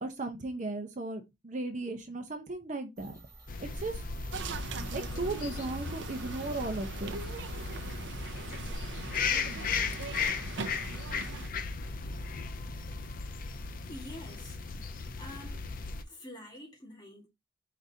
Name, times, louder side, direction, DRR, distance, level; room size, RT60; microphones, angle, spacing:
voice 1, 0.0-3.1 3.6-4.0 4.9-7.2, right 2 dB, 40° right, 0.8 m, -36 dB
sound 1, 3.0-8.7, right 1 dB, 20° right, 2.2 m, -50 dB
sound 2, 3.5-16.0, left 5 dB, 45° left, 0.5 m, -36 dB
sound 3, 4.3-11.5, right 4 dB, 75° right, 0.5 m, -41 dB
voice 2, 13.9-14.6 14.8-15.7 16.0-17.3, left 1 dB, 20° left, 1.6 m, -47 dB
5.0 x 3.8 x 2.7 m
head